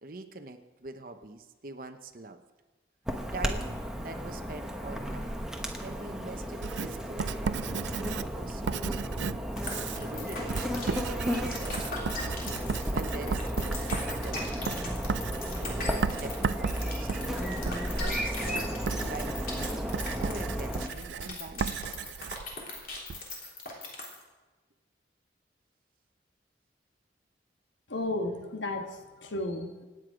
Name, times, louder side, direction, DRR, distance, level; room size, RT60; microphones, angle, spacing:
voice 1, 0.0-2.4 3.3-5.4 5.8-9.0 10.0-12.5 12.9-15.0 15.6-19.8 20.2-22.0, right 3 dB, 50° right, 7 dB, 0.9 m, -44 dB
Chirp tweet / Buzz, 3.1-20.9, equal, 5° right, 1.1 m, -34 dB
Writing, 6.6-23.2, right 5 dB, 70° right, 0.4 m, -36 dB
sound 1, 9.6-24.2, left 3 dB, 50° left, 3.4 m, -39 dB
voice 2, 27.9-29.8, left 2 dB, 80° left, 5 dB, 1.7 m, -33 dB
25.0 x 9.4 x 5.0 m, 1.2 s
head